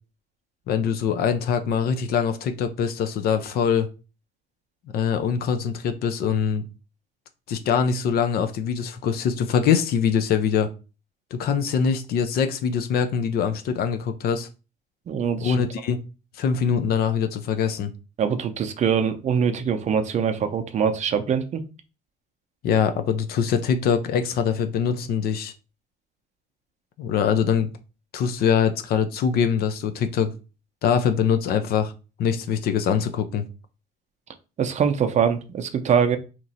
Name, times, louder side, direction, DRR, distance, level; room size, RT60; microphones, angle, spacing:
voice 1, 0.7-3.9 4.9-6.7 7.5-10.7 11.3-14.5 15.4-16.0 16.4-17.9 22.6-25.5 27.0-27.7 28.1-30.3 30.8-31.9 32.2-33.4, left 7 dB, 65° left, 8 dB, 0.5 m, -23 dB
voice 2, 15.1-15.6 18.2-21.6 34.6-36.2, right 7 dB, 45° right, 8 dB, 0.5 m, -23 dB
2.9 x 2.5 x 4.0 m, 0.32 s
cardioid pair, 110°, 17 cm